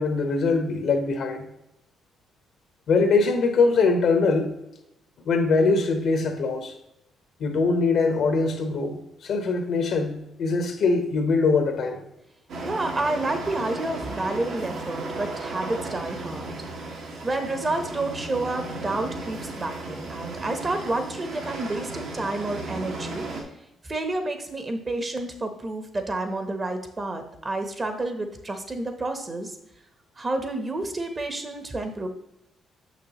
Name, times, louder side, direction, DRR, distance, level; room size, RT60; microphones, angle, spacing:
voice 1, 0.0-1.5 2.9-4.5 5.2-6.7 7.4-12.0, left 4 dB, 70° left, 5 dB, 1.2 m, -22 dB
sound 1, 12.5-23.4, right 2 dB, 75° right, 1.8 m, -35 dB
voice 2, 12.6-16.5 16.9-23.3 23.8-29.6 30.2-32.1, right 2 dB, 30° right, 6 dB, 1.0 m, -30 dB
6.4 x 6.0 x 3.0 m, 0.85 s
cardioid pair, 90°, 0 cm